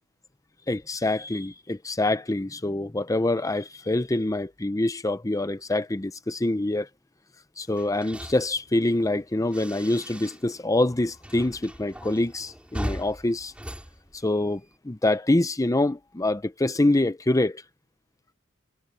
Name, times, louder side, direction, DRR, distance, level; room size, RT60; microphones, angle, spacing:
voice 1, 0.7-6.9 7.6-13.5 14.2-17.6, left 2 dB, 15° left, 0.6 m, -25 dB
sound 1, 7.7-10.6 10.9-14.8, equal, 5° right, 5.1 m, -39 dB
head